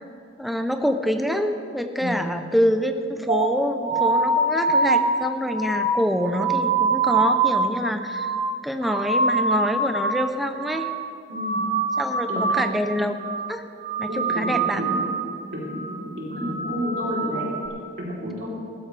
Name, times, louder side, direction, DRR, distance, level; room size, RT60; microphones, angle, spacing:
voice 1, 0.4-8.3 8.6-10.9 12.0-13.2 13.5-13.6 14.0-14.8, equal, ahead, 6 dB, 0.6 m, -26 dB
sound 1, 3.3-10.3 10.5-11.0 11.3-12.8 13.1-13.5 13.8-15.3 15.6-16.0 16.3-17.7, right 3 dB, 40° right, 1.0 m, -24 dB
voice 2, 11.3-11.6 12.3-12.6 14.1-15.0 15.5-15.8 16.0-17.4 18.0-18.5, equal, 70° right, -5 dB, 3.5 m, -30 dB
15.0 x 13.5 x 3.4 m, 2.4 s
head